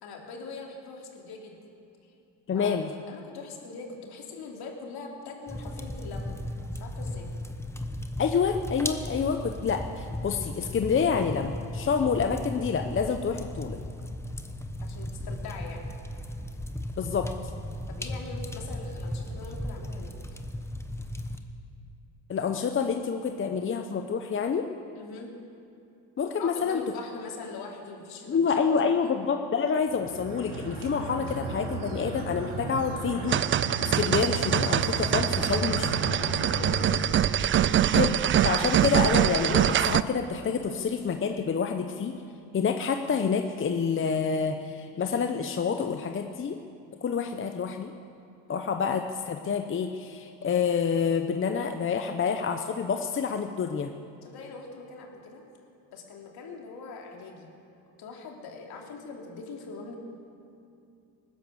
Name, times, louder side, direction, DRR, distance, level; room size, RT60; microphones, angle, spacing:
voice 1, 0.0-1.6 2.5-2.8 3.1-6.4 6.7-7.3 14.8-15.8 17.9-20.1 24.9-25.4 26.4-29.1 35.4-37.8 54.2-55.4 55.9-57.5 58.0-60.0, left 4 dB, 60° left, 0 dB, 3.2 m, -42 dB
voice 2, 2.5-2.9 8.2-13.8 17.0-17.5 22.3-24.7 26.2-26.8 28.3-33.4 34.0-35.9 37.9-42.1 42.5-46.6 47.0-47.9 48.5-53.9, left 6 dB, 30° left, 6 dB, 0.8 m, -28 dB
sound 1, 5.5-21.4, left 1 dB, 5° left, 1.1 m, -36 dB
sound 2, 29.8-36.8, right 3 dB, 70° right, 2.6 m, -34 dB
sound 3, 33.3-40.0, right 10 dB, 30° right, 0.4 m, -24 dB
19.0 x 10.5 x 7.1 m, 2.7 s
supercardioid pair, 95°, 41 cm